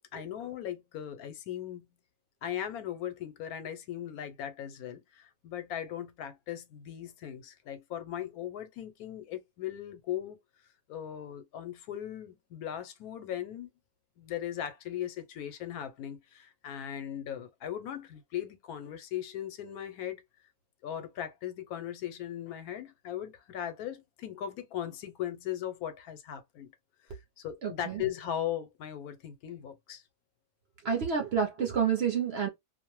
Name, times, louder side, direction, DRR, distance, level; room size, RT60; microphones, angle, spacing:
voice 1, 0.1-1.9 2.4-10.4 10.9-13.7 14.2-20.2 20.8-26.7 27.1-30.0, left 10 dB, 85° left, 1.1 m, -38 dB
voice 2, 27.6-28.0 30.8-32.5, right 7 dB, 60° right, 0.7 m, -29 dB
2.5 x 2.0 x 3.0 m
omnidirectional pair, 1.6 m